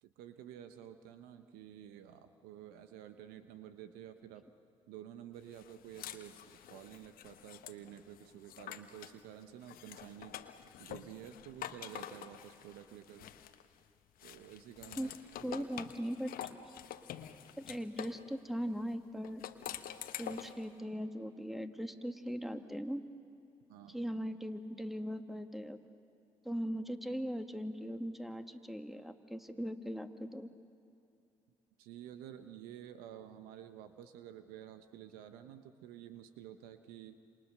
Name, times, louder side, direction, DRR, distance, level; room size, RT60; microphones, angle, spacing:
voice 1, 0.0-4.4 4.9-10.4 10.8-13.3 14.2-15.1 15.4-15.6 23.7-24.0 31.8-37.2, right 10 dB, 80° right, 9 dB, 1.1 m, -51 dB
sound 1, 5.5-9.2 9.6-13.8 14.2-18.2 19.2-20.6, left 11 dB, 70° left, 1.2 m, -47 dB
voice 2, 15.4-16.6 17.6-19.4 20.2-23.0 23.9-25.8 26.4-30.5, equal, ahead, 7 dB, 2.1 m, -39 dB
28.0 x 27.5 x 6.7 m, 2.6 s
hypercardioid pair, 45°, 15 cm